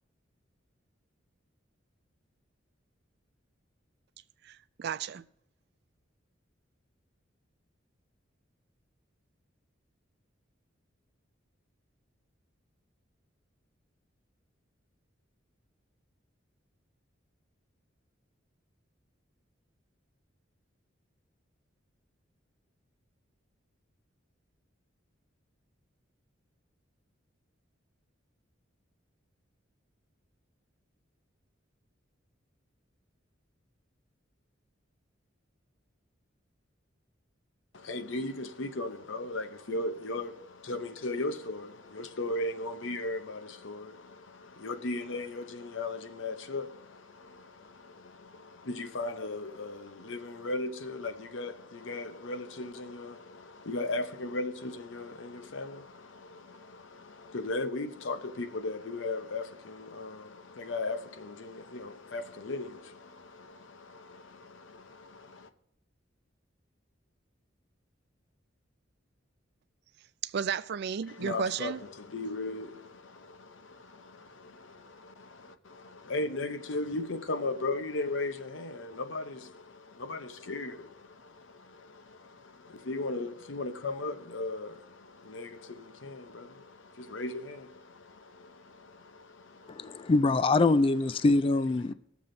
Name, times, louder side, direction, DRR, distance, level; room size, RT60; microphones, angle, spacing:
voice 1, 4.5-5.2 70.2-71.8, right 7 dB, 60° right, 0.4 m, -33 dB
voice 2, 37.7-65.5 71.1-90.1, left 2 dB, 75° left, 0.8 m, -37 dB
voice 3, 89.7-91.9, left 3 dB, 30° left, 0.4 m, -24 dB
19.5 x 7.2 x 3.9 m
head